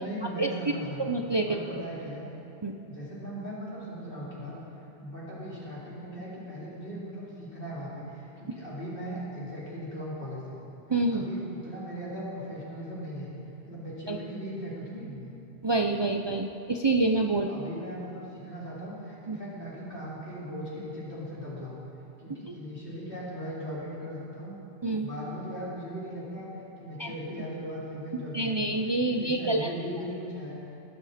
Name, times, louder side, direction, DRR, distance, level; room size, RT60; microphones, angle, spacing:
voice 1, 0.0-1.1 1.4-2.3 2.8-4.5 5.0-10.6 11.1-13.3 13.7-15.4 17.4-21.8 22.2-24.6 25.0-28.8 29.1-30.6, equal, 60° left, -8 dB, 4.2 m, -38 dB
voice 2, 1.0-1.8 2.6-2.8 10.9-11.3 14.1-14.2 15.6-17.5 19.3-19.4 22.5-22.6 24.8-25.1 27.0-27.1 28.3-29.7, right 2 dB, 35° right, 3 dB, 0.5 m, -27 dB
19.5 x 12.5 x 4.3 m, 2.8 s
omnidirectional pair, 1.0 m